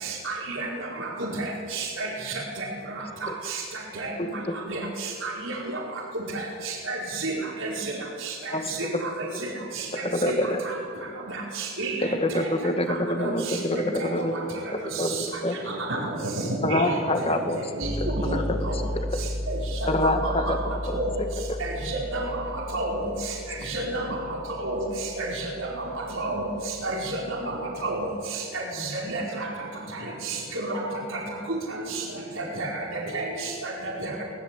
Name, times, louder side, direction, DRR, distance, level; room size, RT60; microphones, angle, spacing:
voice 1, 0.0-0.7 1.2-2.4 3.2-3.6 4.0-4.1 4.7-4.8 5.2-5.5 6.6-7.3 7.6-7.7 8.2-8.3 9.8-10.4 10.7-10.8 11.6-12.0 13.2-13.8 14.2-14.3 15.9-16.0 16.7-16.9 17.8-17.9 18.3-18.4 18.6-18.7 19.5-20.5 20.9-21.1 21.6-22.4 22.7-23.0 23.7-24.0 24.6-24.8 25.2-25.7 26.2-26.5 26.8-27.5 27.8-28.1 28.5-29.5 30.2-30.8 32.4-33.2 33.6-34.1, right 2 dB, 70° right, -2 dB, 4.7 m, -31 dB
voice 2, 10.0-10.6 12.0-14.3 15.0-15.6 16.6-17.6 18.0-18.4 18.7-18.8 19.1-19.2 19.9-21.0 21.5-21.6, left 1 dB, 30° left, 6 dB, 2.0 m, -26 dB
voice 3, 15.7-17.4 17.8-18.9 20.1-20.5 24.0-24.2 26.8-26.9 27.3-27.6 28.5-28.6 29.2-29.3 29.5-29.6 30.0-30.5 31.7-32.2 33.0-33.5 34.1-34.2, right 1 dB, 90° right, -3 dB, 7.9 m, -35 dB
sound 1, 17.8-27.7, left 1 dB, 30° right, 1.9 m, -34 dB
22.0 x 20.5 x 8.4 m, 2.2 s
head